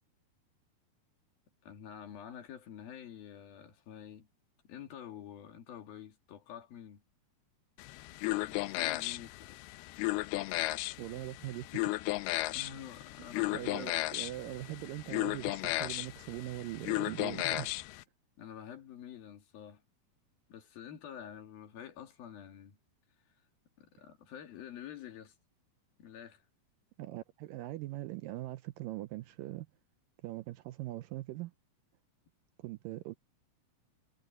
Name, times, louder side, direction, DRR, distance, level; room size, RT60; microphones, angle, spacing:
voice 1, 1.6-4.3 4.6-7.0 8.5-9.6 12.5-14.0 18.4-19.8 20.5-22.8 23.8-25.4 26.0-26.4, left 9 dB, 70° left, 4.1 m, -48 dB
sound 1, 7.8-18.0, left 19 dB, 85° left, 2.7 m, -35 dB
voice 2, 11.0-11.8 13.5-17.8 27.0-29.7 30.2-31.5 32.6-33.2, right 16 dB, 80° right, 2.1 m, -41 dB
omnidirectional pair, 4.4 m